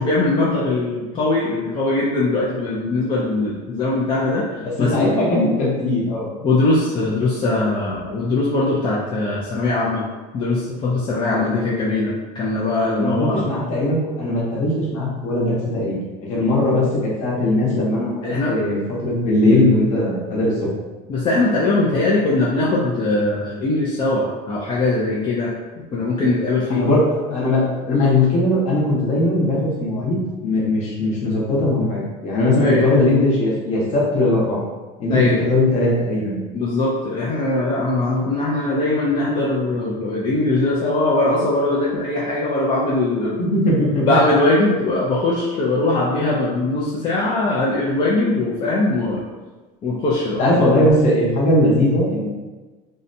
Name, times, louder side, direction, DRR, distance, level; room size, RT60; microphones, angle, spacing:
voice 1, 0.0-4.5 4.8-5.1 6.4-10.0 10.3-13.4 18.2-18.5 21.1-25.5 25.9-26.8 32.6-32.9 35.1-35.4 36.5-43.4 44.0-49.2 49.8-50.4, left 2 dB, 30° left, -6 dB, 0.4 m, -20 dB
voice 2, 4.6-6.3 11.2-11.5 13.0-16.0 16.3-20.7 26.7-27.0 27.3-34.6 35.0-36.4 43.4-44.1 50.4-52.2, left 1 dB, 45° left, -5 dB, 0.9 m, -19 dB
2.6 x 2.1 x 2.6 m, 1.2 s
cardioid pair, 145°, 16 cm